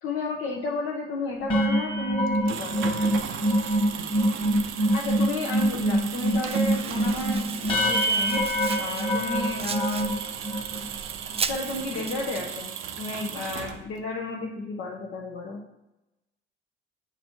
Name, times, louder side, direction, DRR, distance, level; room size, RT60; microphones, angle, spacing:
voice 1, 0.0-2.8 4.9-8.4 8.8-10.1 11.5-12.7 13.0-15.6, left 3 dB, 85° left, -3 dB, 0.9 m, -32 dB
sound 1, 1.4-10.9 11.3-11.5 11.7-12.1, equal, 25° left, 1.4 m, -25 dB
sound 2, 2.3-14.1, right 8 dB, 85° right, 0.6 m, -36 dB
Domestic sounds home sounds, 6.2-12.6, right 6 dB, 30° right, 0.4 m, -38 dB
8.2 x 3.1 x 4.4 m, 0.93 s
cardioid pair, 90°, 20 cm